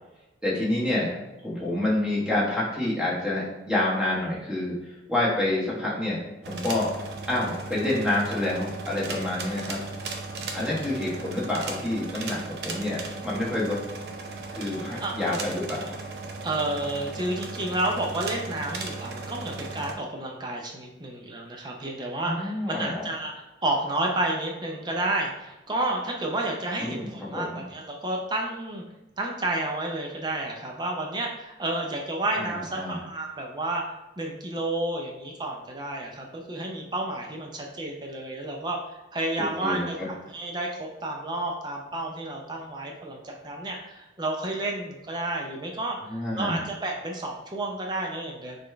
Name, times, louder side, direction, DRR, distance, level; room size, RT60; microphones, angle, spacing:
voice 1, 0.4-1.1 1.4-4.7 5.1-6.2 6.4-6.9 7.3-9.8 10.5-13.8 14.5-15.9 22.2-23.1 26.8-27.6 32.3-33.0 39.6-39.9 46.1-46.6, left 1 dB, 5° right, -7 dB, 1.2 m, -28 dB
sound 1, 6.4-19.9, right 3 dB, 65° right, 0.6 m, -36 dB
voice 2, 16.4-28.8 29.2-33.8 34.2-48.6, right 2 dB, 25° right, 0 dB, 0.5 m, -31 dB
4.2 x 3.3 x 3.3 m, 1.0 s
head